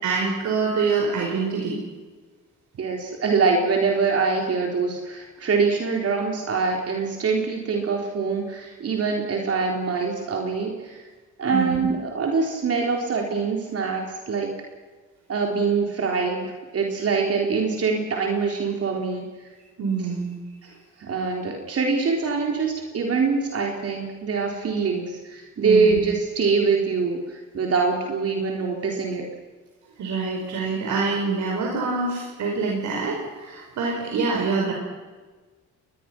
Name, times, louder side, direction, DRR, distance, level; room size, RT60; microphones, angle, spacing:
voice 1, 0.0-1.8 11.5-11.9 19.8-20.4 25.6-26.0 30.0-34.7, right 4 dB, 75° right, -1 dB, 5.2 m, -25 dB
voice 2, 2.8-11.0 11.4-14.5 15.3-19.3 21.0-29.3, right 4 dB, 50° right, 1 dB, 4.1 m, -24 dB
23.0 x 20.5 x 6.2 m, 1.3 s
cardioid pair, 90°, 30 cm